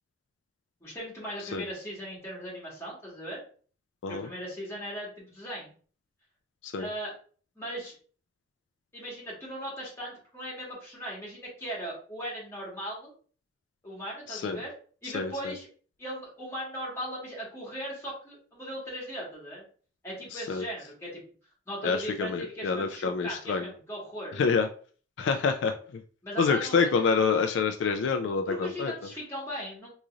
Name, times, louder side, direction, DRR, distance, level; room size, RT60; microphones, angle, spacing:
voice 1, 0.8-3.4 4.1-5.7 6.8-7.1 7.5-7.9 8.9-13.1 13.8-14.7 15.0-15.7 16.0-19.6 20.0-21.2 21.7-24.4 26.2-26.9 28.5-29.9, equal, 15° left, -5 dB, 1.5 m, -38 dB
voice 2, 14.3-14.6 15.1-15.3 20.3-20.6 21.8-23.7 24.4-24.7 25.2-26.0 26.4-28.9, left 5 dB, 70° left, 6 dB, 0.3 m, -27 dB
3.8 x 3.0 x 2.4 m, 0.42 s
head